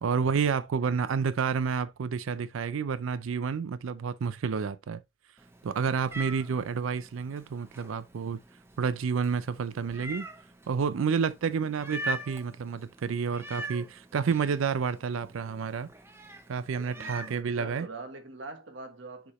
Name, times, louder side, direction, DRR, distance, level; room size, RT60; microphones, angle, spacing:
voice 1, 0.0-5.0 5.6-8.4 8.8-10.3 10.7-15.9 16.5-17.9, right 6 dB, 85° right, 0.4 m, -29 dB
Meow, 5.4-17.4, right 1 dB, 10° right, 0.7 m, -43 dB
voice 2, 16.9-19.3, right 2 dB, 70° right, 1.4 m, -44 dB
7.0 x 4.9 x 2.9 m
head